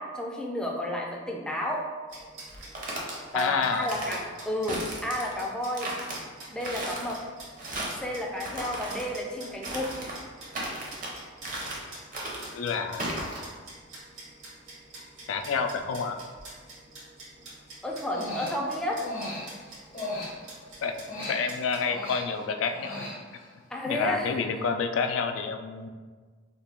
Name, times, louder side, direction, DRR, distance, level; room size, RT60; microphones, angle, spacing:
voice 1, 0.0-1.9 3.3-5.9 6.5-7.2 8.0-9.9 17.8-19.1 23.7-24.3, left 1 dB, 5° left, -2 dB, 0.4 m, -31 dB
sound 1, 2.1-21.8, right 2 dB, 80° right, 1.2 m, -47 dB
sound 2, 2.5-3.1 3.7-4.2 4.7-5.4 5.7-6.2 6.6-7.1 7.6-8.0 8.4-9.1 9.6-10.2 10.5-11.1 11.4-11.9 12.1-12.5 13.0-13.4, right 1 dB, 45° right, 0.6 m, -35 dB
voice 2, 3.3-3.9 12.5-13.2 15.3-16.2 20.8-23.0 23.9-25.9, left 5 dB, 85° left, 6 dB, 0.3 m, -29 dB
Human voice, 18.0-20.7 21.0-23.5, left 1 dB, 40° left, 0.7 m, -37 dB
2.9 x 2.2 x 4.1 m, 1.5 s
head